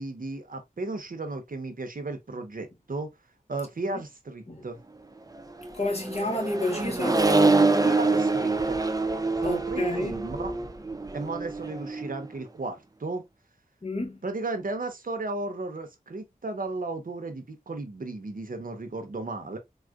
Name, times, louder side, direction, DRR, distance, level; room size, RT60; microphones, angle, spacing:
voice 1, 0.0-3.1 3.5-4.8 7.8-8.8 9.4-10.5 11.1-13.2 14.2-19.6, right 3 dB, 65° right, 0.7 m, -35 dB
Accelerating revving vroom, 5.6-12.3, right 3 dB, 25° right, 0.5 m, -25 dB
voice 2, 5.7-7.3 9.4-10.2 13.8-14.2, left 1 dB, 40° left, 1.1 m, -30 dB
3.5 x 2.4 x 2.3 m
wide cardioid pair, 45°, 16 cm